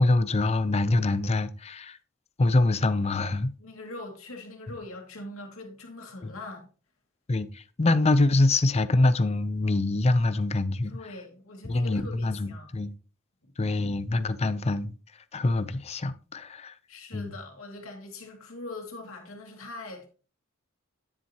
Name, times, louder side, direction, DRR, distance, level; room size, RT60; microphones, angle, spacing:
voice 1, 0.0-2.0 2.4-3.5 6.2-6.3 7.3-10.9 11.6-12.9 13.6-14.9 15.3-16.7 17.1-17.3, left 2 dB, 30° left, 0.5 m, -25 dB
voice 2, 3.6-6.7 10.8-12.7 16.9-20.1, left 2 dB, 65° left, 2.3 m, -42 dB
9.9 x 7.6 x 2.9 m
head